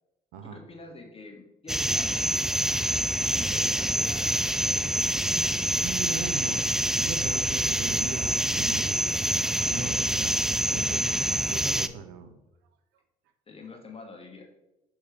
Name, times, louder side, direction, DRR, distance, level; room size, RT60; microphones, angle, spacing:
voice 1, 0.4-2.3 2.7-5.1 13.5-14.5, left 3 dB, 30° left, 2 dB, 1.6 m, -46 dB
sound 1, 1.7-11.9, right 1 dB, ahead, 0.3 m, -26 dB
voice 2, 5.8-9.2 9.7-12.4, right 6 dB, 70° right, 8 dB, 0.7 m, -39 dB
6.5 x 3.6 x 4.9 m, 0.94 s
hypercardioid pair, 55°, 19 cm